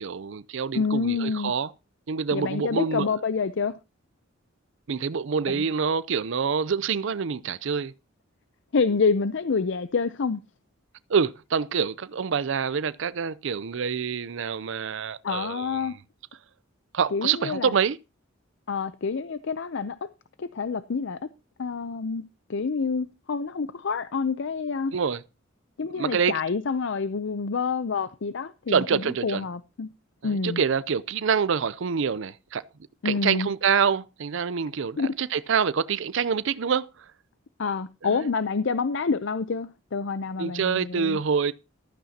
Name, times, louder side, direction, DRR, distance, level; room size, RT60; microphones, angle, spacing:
voice 1, 0.0-1.7 2.1-3.1 4.9-7.9 11.1-15.9 16.9-18.0 24.9-25.2 25.9-26.4 28.7-29.4 30.2-32.6 33.0-37.1 38.0-38.3 40.4-41.5, right 6 dB, 65° right, 0.5 m, -26 dB
voice 2, 0.7-1.5 2.3-3.7 5.4-5.6 8.7-10.4 15.2-16.0 17.1-17.7 18.7-20.1 20.4-21.2 21.6-22.2 22.5-24.9 25.8-29.9 30.2-30.6 33.0-33.5 35.0-35.1 37.6-41.2, left 5 dB, 65° left, 0.6 m, -27 dB
15.0 x 12.5 x 2.8 m
head